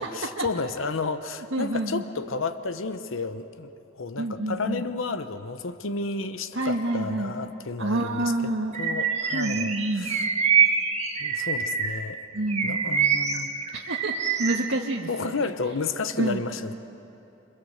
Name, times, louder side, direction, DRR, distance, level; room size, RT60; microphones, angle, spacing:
voice 1, 0.0-10.3 11.2-12.3 12.6-13.5 15.1-16.7, left 4 dB, 80° left, 11 dB, 0.9 m, -32 dB
voice 2, 1.5-2.0 4.2-4.8 6.5-7.3 7.8-8.7 9.3-10.1 12.3-12.8 13.7-14.1 14.4-15.3 16.2-16.4, right 2 dB, 80° right, -2 dB, 1.6 m, -28 dB
Bird vocalization bird call bird song, 8.7-12.1 12.5-14.7, right 6 dB, 35° right, 1.5 m, -25 dB
28.5 x 24.5 x 7.9 m, 3.0 s
head